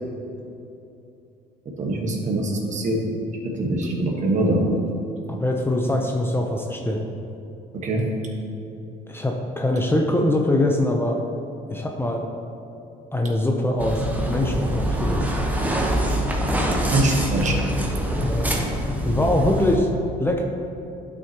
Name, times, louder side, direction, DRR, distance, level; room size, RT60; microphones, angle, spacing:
voice 1, 1.8-3.0 3.4-4.6 7.8-8.0 16.9-17.6, right 2 dB, 45° right, 0 dB, 1.4 m, -23 dB
voice 2, 5.3-7.0 9.1-11.2 11.7-12.2 13.1-15.4 18.2-18.6 19.0-19.9 20.2-20.4, left 1 dB, 15° left, 1 dB, 0.7 m, -23 dB
sound 1, 13.8-19.8, right 1 dB, 10° right, 1.0 m, -24 dB
11.0 x 6.2 x 2.9 m, 2.8 s
cardioid pair, 110°, 17 cm